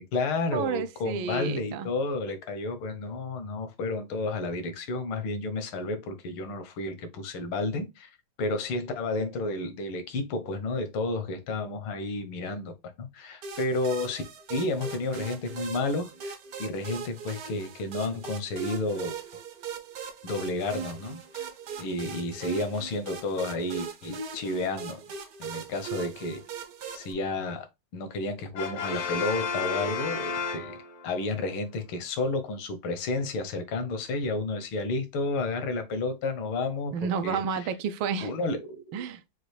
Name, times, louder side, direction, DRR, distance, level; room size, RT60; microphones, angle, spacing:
voice 1, 0.0-8.1 8.4-14.2 14.5-19.2 20.2-21.5 21.8-25.0 25.4-26.4 26.9-27.7 27.9-30.8 31.0-36.9 37.2-37.4 38.2-39.0, left 2 dB, 80° left, 1.8 m, -31 dB
voice 2, 0.5-1.9 36.9-38.3 38.9-39.2, right 6 dB, 75° right, 1.4 m, -30 dB
sound 1, 13.4-27.1, right 6 dB, 60° right, 1.1 m, -40 dB
Brass instrument, 28.5-31.2, left 5 dB, 60° left, 0.8 m, -32 dB
6.1 x 2.5 x 3.2 m
omnidirectional pair, 2.3 m